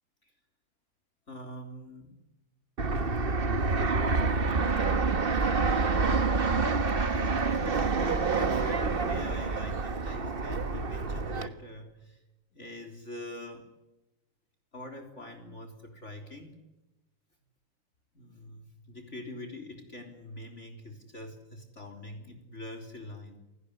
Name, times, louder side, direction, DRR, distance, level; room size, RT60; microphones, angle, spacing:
voice 1, 1.3-2.2 4.1-4.2 4.6-4.9 5.6-6.2 7.5-12.2 12.5-13.7 14.7-16.6 18.1-23.4, left 1 dB, 35° left, 4 dB, 3.9 m, -44 dB
Fixed-wing aircraft airplane, 2.8-11.5, right 4 dB, 30° right, 1.4 m, -27 dB
28.0 x 18.0 x 10.0 m, 0.96 s
omnidirectional pair, 2.1 m